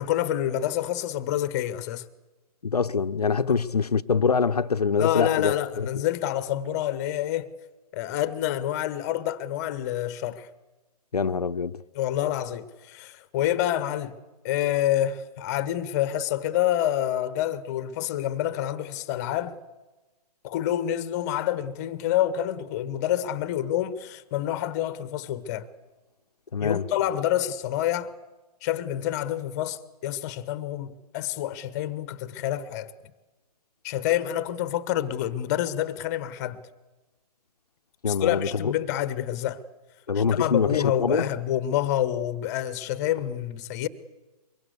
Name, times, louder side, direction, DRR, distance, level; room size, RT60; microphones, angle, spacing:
voice 1, 0.0-2.1 3.5-3.6 5.0-7.5 7.9-10.5 11.9-14.1 14.4-19.6 20.4-25.7 26.6-28.1 28.6-32.9 33.8-36.6 38.1-39.6 40.1-43.9, left 12 dB, 25° left, 1.2 m, -27 dB
voice 2, 2.6-5.9 11.1-11.8 26.5-26.9 38.0-38.7 40.1-41.3, left 5 dB, 70° left, 0.9 m, -24 dB
23.5 x 23.5 x 8.2 m
figure-of-eight pair, 135°, 21 cm